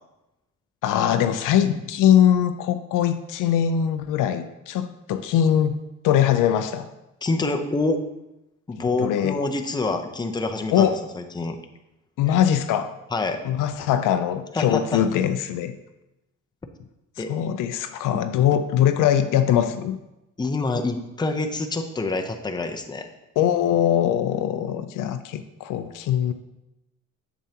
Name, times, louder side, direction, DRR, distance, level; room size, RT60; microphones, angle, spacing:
voice 1, 0.8-5.8 6.0-6.9 8.8-9.4 10.7-11.0 12.2-13.0 13.4-15.7 17.3-20.0 23.4-26.3, left 10 dB, 80° left, 9 dB, 0.5 m, -21 dB
voice 2, 7.2-8.0 8.7-11.6 13.1-13.4 14.5-15.0 17.2-17.3 18.1-18.2 20.4-23.1, left 3 dB, 15° left, 5 dB, 0.6 m, -26 dB
7.3 x 7.1 x 2.8 m, 0.94 s
cardioid pair, 95°, 31 cm